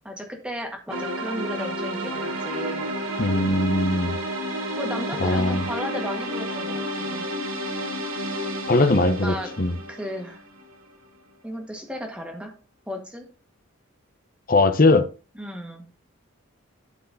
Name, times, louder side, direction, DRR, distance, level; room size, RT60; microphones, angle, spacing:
voice 1, 0.0-2.9 4.8-7.3 9.2-9.5 9.9-10.4 11.4-12.5 12.9-13.3 15.3-15.8, equal, 5° right, 1.8 m, -34 dB
sound 1, 0.9-10.9, equal, 85° right, 2.3 m, -31 dB
voice 2, 3.2-4.2 5.2-5.6 8.7-9.7 14.5-15.1, left 2 dB, 40° left, 0.8 m, -20 dB
12.5 x 4.8 x 4.0 m
head